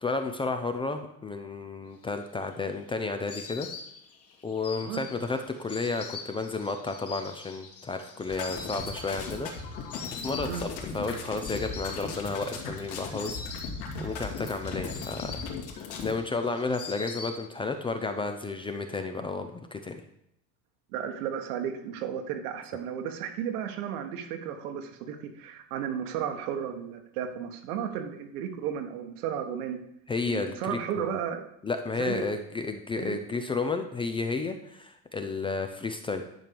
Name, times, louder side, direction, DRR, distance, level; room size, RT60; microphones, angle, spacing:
voice 1, 0.0-3.7 4.4-9.5 10.1-13.7 14.0-15.3 16.0-20.0 30.1-31.2 31.6-36.2, left 3 dB, 10° left, 7 dB, 0.5 m, -32 dB
Insect, 2.1-17.8 18.1-18.9, left 5 dB, 30° left, 1.5 m, -44 dB
voice 2, 4.7-5.1 10.4-10.6 20.9-29.8 30.2-31.4 32.0-32.3 32.9-33.2, right 8 dB, 80° right, 6 dB, 1.6 m, -34 dB
sound 1, 8.3-16.1, left 4 dB, 60° left, 2.5 m, -37 dB
10.5 x 4.5 x 7.0 m, 0.77 s
supercardioid pair, 140°, 44 cm